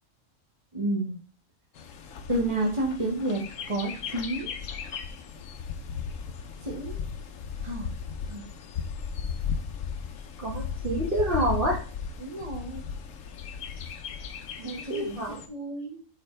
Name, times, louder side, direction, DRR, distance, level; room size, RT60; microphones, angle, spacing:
voice 1, 0.7-1.1 2.3-3.4 3.7-4.5 6.6-7.0 7.6-7.9 8.2-8.4 12.2-12.8 14.6-16.0, right 1 dB, 25° right, -1 dB, 1.4 m, -30 dB
Bird, 1.7-15.5, left 6 dB, 80° left, 1.1 m, -36 dB
voice 2, 10.4-11.8 14.6-15.4, right 1 dB, 45° right, -4 dB, 1.8 m, -28 dB
6.8 x 5.0 x 3.2 m, 0.37 s
omnidirectional pair, 1.3 m